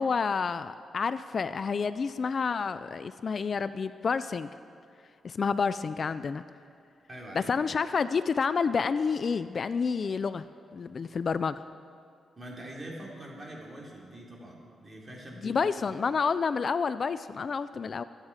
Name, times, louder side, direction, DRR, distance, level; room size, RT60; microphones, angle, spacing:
voice 1, 0.0-4.5 5.2-6.4 7.3-10.5 10.7-11.6 15.4-18.0, left 5 dB, 50° left, 13 dB, 0.4 m, -29 dB
voice 2, 7.1-7.5 12.4-15.6, right 1 dB, 30° right, -2 dB, 3.5 m, -44 dB
23.0 x 9.1 x 4.9 m, 2.5 s
cardioid pair, 90°, 0 cm